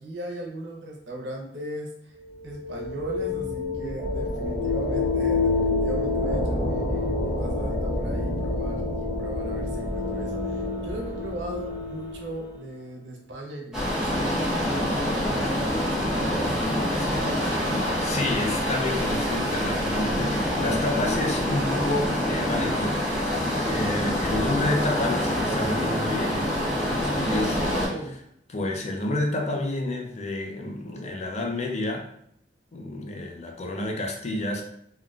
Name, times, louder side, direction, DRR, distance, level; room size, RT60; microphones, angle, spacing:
voice 1, 0.0-2.2 2.4-16.4 27.3-28.2, right 1 dB, 80° right, 0 dB, 0.7 m, -38 dB
sound 1, 2.2-12.8, left 2 dB, 85° left, 1.1 m, -28 dB
sound 2, 13.7-27.9, equal, 5° right, 0.8 m, -26 dB
voice 2, 16.8-26.6 27.0-27.7 28.5-32.1 32.7-34.6, left 2 dB, 40° left, 2 dB, 0.5 m, -30 dB
3.7 x 2.2 x 2.3 m, 0.71 s
head